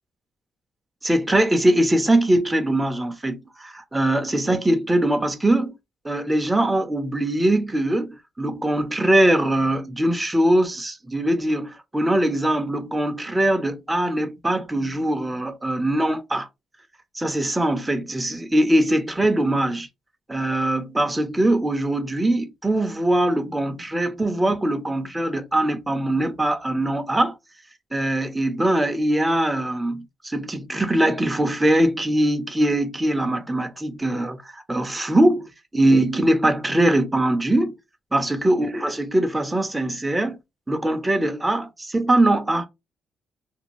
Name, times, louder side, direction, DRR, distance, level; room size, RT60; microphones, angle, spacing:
voice 1, 1.0-5.7 6.0-16.5 17.1-19.9 20.3-27.3 27.9-37.7 38.1-40.4 40.7-42.7, right 1 dB, 10° right, 0.5 m, -22 dB
2.6 x 2.2 x 3.0 m
cardioid pair, 90°, 0 cm